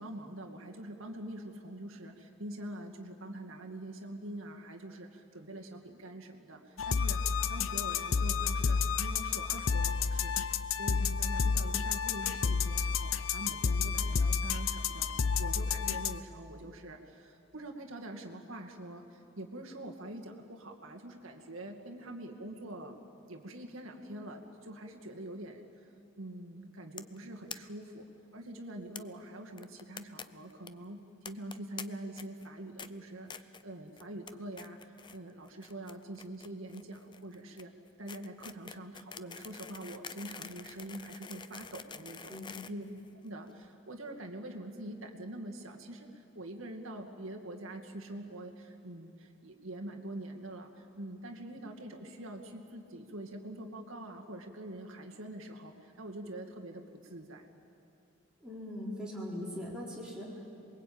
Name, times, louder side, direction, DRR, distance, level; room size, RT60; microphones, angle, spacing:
voice 1, 0.0-23.0 23.3-25.9 26.2-28.1 28.3-37.7 38.0-42.3 42.7-42.8 43.2-57.5, right 1 dB, 65° right, 2 dB, 2.3 m, -45 dB
sound 1, 6.8-16.2, left 5 dB, 65° left, 0.7 m, -30 dB
sound 2, 27.0-27.2 27.5-27.6 27.8-27.9 28.1-28.2 29.0-29.1 29.6-30.2 30.5-30.7 31.3-31.8 32.2-32.5 32.8-32.9 33.3-33.6 34.0-34.3 34.6-35.2 35.5-43.5, left 6 dB, 20° left, 0.5 m, -46 dB
voice 2, 42.3-42.7 58.4-60.5, left 1 dB, 5° right, -6 dB, 4.2 m, -41 dB
27.5 x 22.0 x 8.8 m, 2.8 s
head